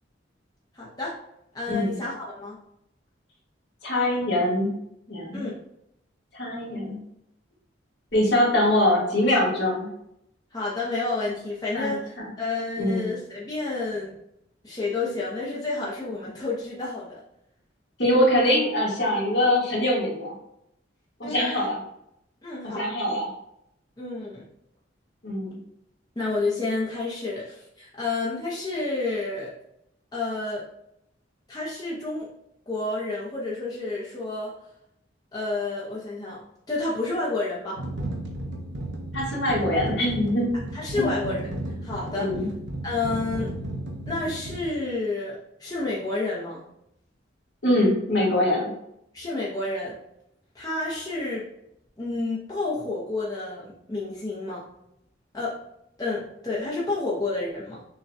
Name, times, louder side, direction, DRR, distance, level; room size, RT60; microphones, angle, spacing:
voice 1, 0.7-1.2 1.5-2.6 5.3-5.6 10.5-14.2 14.6-17.2 21.2-21.7 22.4-22.9 24.0-24.4 26.2-29.5 30.1-30.6 31.5-32.3 32.7-34.5 35.3-36.4 36.7-37.8 40.7-41.5 41.8-42.4 42.8-43.6 44.1-46.7 49.1-50.0 50.5-51.5 52.0-54.7 55.3-55.6 56.0-57.8, left 3 dB, 20° left, -6 dB, 0.7 m, -30 dB
voice 2, 3.8-4.7 5.1-5.4 6.3-7.0 8.1-9.9 11.7-11.9 12.2-12.3 12.8-13.1 18.0-20.3 21.2-21.8 22.6-23.3 25.2-25.6 39.1-40.5 41.0-41.1 42.1-42.5 47.6-48.7, left 1 dB, 60° left, -5 dB, 1.5 m, -23 dB
sound 1, 37.8-44.7, right 1 dB, 65° right, 0.7 m, -34 dB
6.3 x 2.3 x 2.6 m, 0.79 s
head